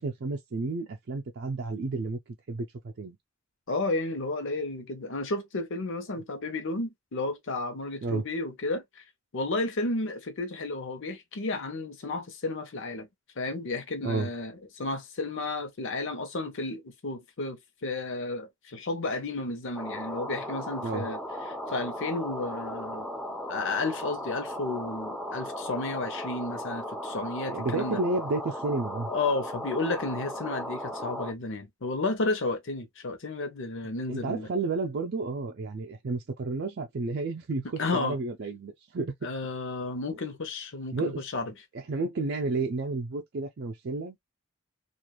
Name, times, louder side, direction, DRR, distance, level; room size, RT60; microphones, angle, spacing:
voice 1, 0.0-2.2 2.5-2.7 3.0-3.2 8.0-8.2 14.0-14.3 20.8-21.1 27.5-29.1 34.1-39.1 40.9-41.3 41.9-44.2, right 3 dB, 55° right, 0.5 m, -31 dB
voice 2, 3.7-9.0 9.3-13.1 13.4-21.2 21.5-23.1 23.5-28.0 29.1-34.5 37.8-38.2 39.2-41.5, left 2 dB, 65° left, 0.8 m, -32 dB
sound 1, 19.7-31.3, equal, ahead, 0.8 m, -36 dB
3.1 x 2.4 x 2.3 m
head